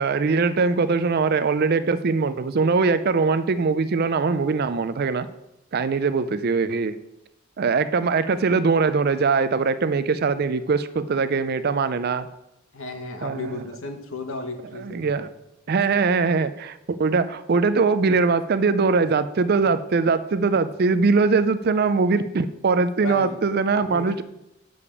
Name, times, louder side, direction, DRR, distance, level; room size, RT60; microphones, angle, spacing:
voice 1, 0.0-5.3 5.7-7.0 7.6-12.3 13.2-13.6 14.7-15.3 15.7-24.2, right 4 dB, 45° right, 13 dB, 0.4 m, -22 dB
voice 2, 12.7-15.1 23.0-23.4 23.7-24.2, left 3 dB, 70° left, 6 dB, 1.1 m, -33 dB
6.9 x 5.0 x 7.1 m, 0.87 s
head